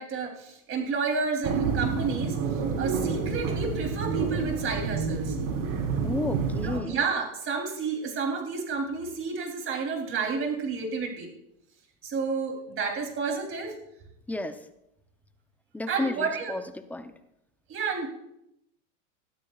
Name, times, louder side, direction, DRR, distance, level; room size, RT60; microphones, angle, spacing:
voice 1, 0.0-2.3 2.8-5.4 6.6-11.3 12.0-13.7 15.9-16.5 17.7-18.1, right 4 dB, 30° right, 2 dB, 3.2 m, -30 dB
sound 1, 1.4-6.8, right 5 dB, 55° right, 3.9 m, -28 dB
voice 2, 6.0-7.0 14.3-14.6 15.7-17.1, left 2 dB, 5° left, 9 dB, 0.6 m, -32 dB
21.0 x 13.5 x 2.4 m, 0.82 s
supercardioid pair, 125°, 41 cm